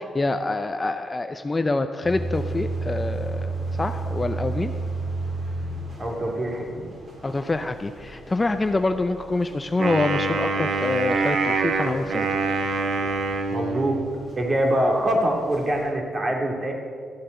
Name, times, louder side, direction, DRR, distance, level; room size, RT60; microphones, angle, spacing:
voice 1, 0.0-3.5 3.8-4.7 7.2-12.3, left 2 dB, 20° left, 8 dB, 0.5 m, -26 dB
sound 1, 2.0-15.9, right 3 dB, 45° right, 3.7 m, -34 dB
voice 2, 6.0-6.8 13.5-14.0 14.4-16.7, right 1 dB, 25° right, 1 dB, 2.5 m, -24 dB
Wind instrument woodwind instrument, 9.8-14.2, right 4 dB, 65° right, 1.2 m, -25 dB
13.5 x 8.1 x 7.9 m, 2.1 s
cardioid pair, 105°, 0 cm